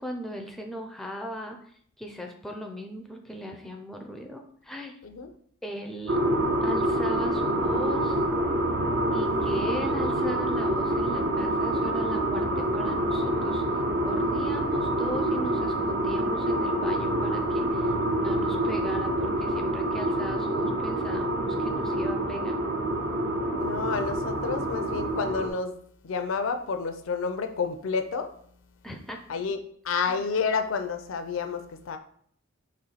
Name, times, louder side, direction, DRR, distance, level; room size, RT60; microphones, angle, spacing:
voice 1, 0.0-1.7 2.0-5.0 5.6-6.2 6.6-8.2 9.1-17.9 18.2-22.6 28.8-29.2 30.1-30.2, equal, ahead, 0.4 m, -38 dB
sound 1, 6.1-25.5, right 1 dB, 60° right, 0.6 m, -27 dB
voice 2, 19.6-19.9 23.6-25.8 26.0-28.3 29.3-32.0, left 5 dB, 70° left, 0.5 m, -30 dB
4.3 x 3.0 x 4.0 m
head